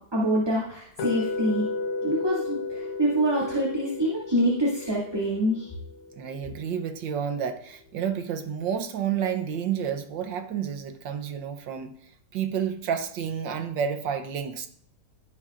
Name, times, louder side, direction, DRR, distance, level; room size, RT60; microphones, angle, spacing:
voice 1, 0.1-1.7 2.0-5.7, equal, 10° right, -7 dB, 2.3 m, -26 dB
sound 1, 1.0-7.1, left 3 dB, 85° left, 2.0 m, -34 dB
voice 2, 6.2-12.0 12.3-14.7, right 8 dB, 65° right, 8 dB, 1.4 m, -30 dB
17.0 x 6.3 x 2.5 m, 0.65 s
omnidirectional pair, 2.3 m